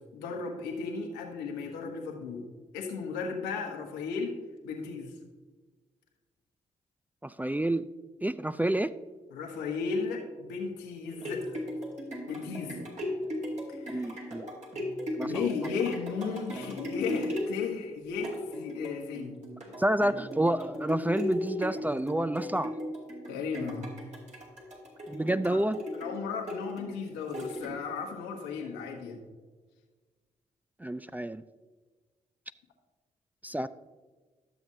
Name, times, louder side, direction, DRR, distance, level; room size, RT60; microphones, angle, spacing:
voice 1, 0.1-2.4 2.7-4.4 4.6-5.1 9.3-11.6 12.3-12.9 13.7-14.3 15.2-19.4 23.3-23.9 25.5-25.6 25.9-29.2, left 5 dB, 85° left, 2 dB, 1.1 m, -35 dB
voice 2, 7.2-7.8 8.2-8.9 13.9-14.4 15.2-15.3 19.8-22.7 25.1-25.8 30.8-31.4 33.4-33.7, right 1 dB, 10° right, 14 dB, 0.3 m, -29 dB
sound 1, 10.9-28.1 28.6-28.7, left 1 dB, 45° right, 2.6 m, -37 dB
12.0 x 7.1 x 2.7 m, 1.3 s
hypercardioid pair, 40°, 17 cm